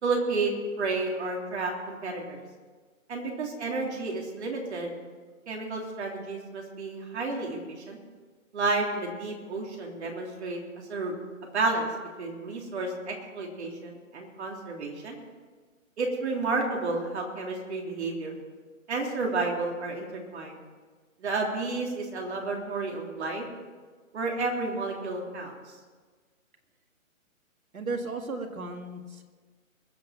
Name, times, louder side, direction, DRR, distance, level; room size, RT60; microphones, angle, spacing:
voice 1, 0.0-2.4 3.1-4.9 5.5-8.0 8.5-10.6 10.9-11.1 11.4-11.9 12.2-15.2 16.0-18.3 18.9-20.6 21.2-23.4 24.1-25.7, right 3 dB, 55° right, 0 dB, 3.4 m, -31 dB
voice 2, 27.7-29.2, right 3 dB, 85° right, 4 dB, 2.1 m, -35 dB
21.5 x 7.6 x 5.8 m, 1.5 s
hypercardioid pair, 150°, 41 cm